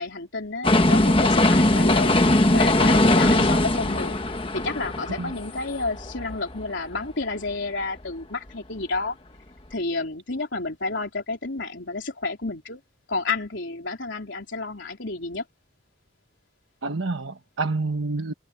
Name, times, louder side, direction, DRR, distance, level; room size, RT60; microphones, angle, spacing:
voice 1, 0.0-4.2 4.5-9.2 9.7-12.8 13.1-15.4, left 3 dB, 70° left, 3.6 m, -30 dB
sound 1, 0.6-6.6 7.0-7.1, left 1 dB, 25° left, 1.3 m, -20 dB
voice 2, 16.8-18.3, right 3 dB, 85° right, 1.2 m, -28 dB
head